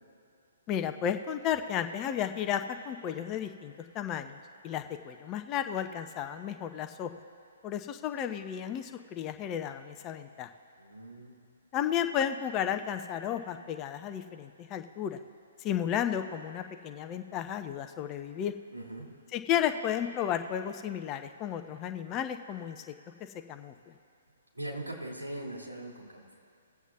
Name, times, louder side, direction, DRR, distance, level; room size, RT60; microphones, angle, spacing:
voice 1, 0.7-4.4 4.6-7.1 7.6-10.5 11.7-15.2 15.6-18.5 19.3-22.9 23.5-23.7, left 9 dB, 25° left, 7 dB, 0.7 m, -33 dB
voice 2, 10.8-11.4 18.7-19.0 24.6-26.3, right 1 dB, 85° right, -2 dB, 2.9 m, -40 dB
21.5 x 8.2 x 2.4 m, 2.4 s
figure-of-eight pair, 125°, 0 cm